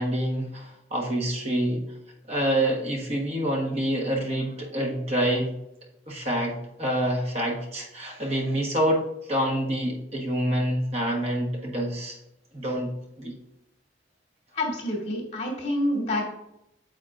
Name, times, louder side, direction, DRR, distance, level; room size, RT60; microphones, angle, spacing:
voice 1, 0.0-1.8 2.3-5.5 6.1-12.2 12.5-12.9 13.2-13.3, right 1 dB, 35° right, 0 dB, 1.3 m, -27 dB
voice 2, 14.5-16.3, left 1 dB, 40° left, -2 dB, 2.6 m, -27 dB
8.8 x 7.8 x 2.5 m, 0.85 s
head